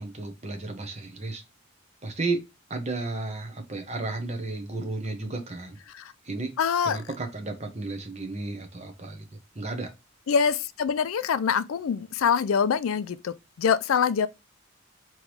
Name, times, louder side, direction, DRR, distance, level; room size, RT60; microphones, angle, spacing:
voice 1, 0.0-1.4 2.0-2.4 2.7-5.8 6.2-6.6 6.9-9.2 9.5-9.9, right 3 dB, 30° right, 1.0 m, -33 dB
voice 2, 6.6-7.0 10.3-14.3, left 6 dB, 75° left, 0.4 m, -25 dB
3.6 x 3.1 x 4.6 m
head